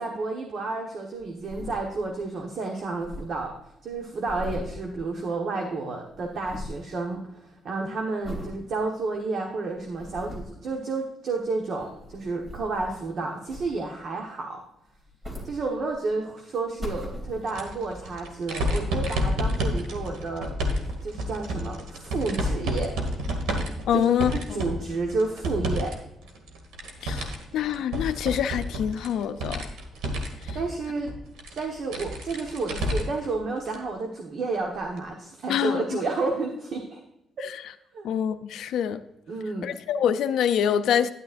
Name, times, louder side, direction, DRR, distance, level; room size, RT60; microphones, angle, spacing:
voice 1, 0.0-3.5 3.8-14.6 15.4-20.6 21.0-23.0 23.9-25.9 30.5-31.1 31.6-37.0 37.9-38.1 39.3-39.7, right 3 dB, 60° right, 1.2 m, -31 dB
sound 1, 1.2-2.3 2.6-2.7 2.8-5.6 5.9-6.9 7.4-7.7 8.2-8.6 9.1-9.2 9.8-10.6 11.6-13.1 13.5-14.1 14.9-16.1 16.5-17.7 18.3-18.4, left 1 dB, 25° right, 2.8 m, -40 dB
sound 2, 17.5-25.9 26.3-33.3 33.7-33.8 35.0-35.1, equal, 90° right, 1.7 m, -30 dB
voice 2, 23.9-24.6 27.0-27.3 27.5-29.6 30.5-30.6 35.5-36.0 38.0-39.0 39.6-41.1, left 9 dB, 80° left, 0.4 m, -25 dB
10.5 x 9.5 x 2.6 m
cardioid pair, 90°, 0 cm